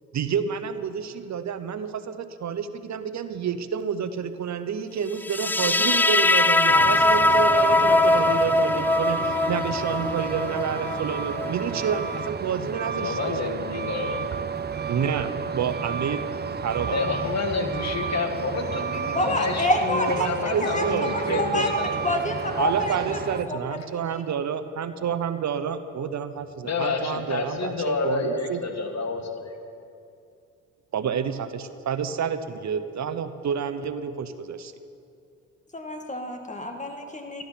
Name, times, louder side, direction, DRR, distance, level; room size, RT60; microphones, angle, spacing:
voice 1, 0.1-13.5 14.9-16.2 16.6-17.2 20.2-21.6 22.6-28.6 30.9-34.7, right 7 dB, 60° right, 11 dB, 0.9 m, -29 dB
sound 1, 5.2-12.3, left 2 dB, 5° left, 0.3 m, -22 dB
Truck, 6.7-23.4, right 5 dB, 30° right, 0.7 m, -31 dB
voice 2, 13.0-14.2 16.9-21.9 26.6-29.6, left 4 dB, 55° left, 5 dB, 1.6 m, -29 dB
voice 3, 19.1-23.2 23.5-23.6 23.9-24.1 35.7-37.4, left 1 dB, 20° left, 4 dB, 2.1 m, -28 dB
13.5 x 12.0 x 5.9 m, 2.5 s
supercardioid pair, 60°, 32 cm